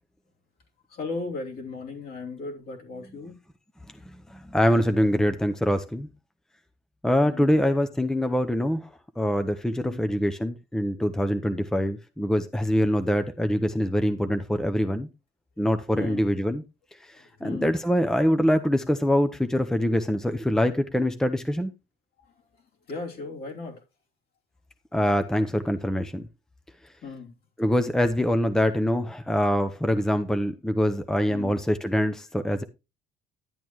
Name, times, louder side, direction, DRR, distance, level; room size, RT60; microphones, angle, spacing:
voice 1, 0.9-3.4 7.2-7.6 9.8-10.1 15.9-16.2 17.1-17.9 22.2-22.3 22.9-23.8 27.0-27.3 31.3-31.6, left 3 dB, 60° left, 3.0 m, -37 dB
voice 2, 4.3-6.1 7.0-8.9 9.2-15.1 15.6-16.6 17.0-21.7 24.9-26.2 27.6-32.6, equal, 5° left, 0.7 m, -24 dB
11.0 x 8.4 x 3.0 m
cardioid pair, 110°, 17 cm